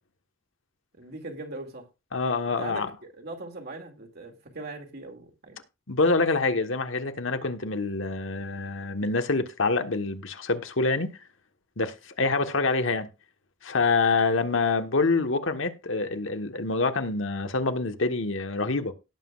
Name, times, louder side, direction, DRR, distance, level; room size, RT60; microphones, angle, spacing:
voice 1, 0.9-1.9 2.6-5.6, right 2 dB, 55° right, 2.3 m, -40 dB
voice 2, 2.1-2.9 5.9-11.1 11.8-13.1 13.6-18.9, left 3 dB, 70° left, 1.3 m, -26 dB
17.5 x 7.5 x 2.4 m
head